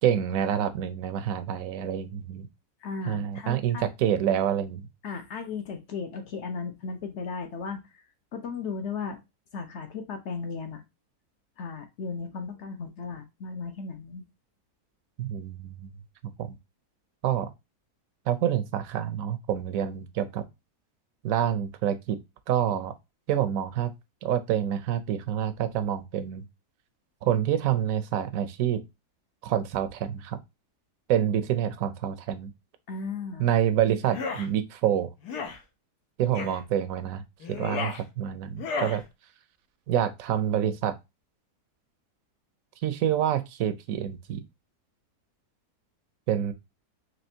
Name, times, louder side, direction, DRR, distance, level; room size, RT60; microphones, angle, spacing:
voice 1, 0.0-2.5 3.1-4.9 15.2-15.9 16.4-16.5 17.2-17.5 18.3-20.5 21.2-22.2 22.5-22.9 23.3-23.9 24.2-26.4 27.2-28.8 29.4-30.4 31.1-32.5 33.4-35.1 36.2-37.2 37.5-39.0 39.9-41.0 42.8-44.4 46.3-46.5, right 10 dB, 70° right, 0.9 m, -27 dB
voice 2, 2.8-3.8 5.0-9.2 9.5-10.8 11.6-14.3 32.9-33.5, left 5 dB, 55° left, 0.9 m, -36 dB
sound 1, 34.0-34.5 35.2-35.6 36.3-36.6 37.4-38.0 38.6-39.0, left 4 dB, 85° left, 1.4 m, -33 dB
4.3 x 3.1 x 2.7 m
omnidirectional pair, 1.7 m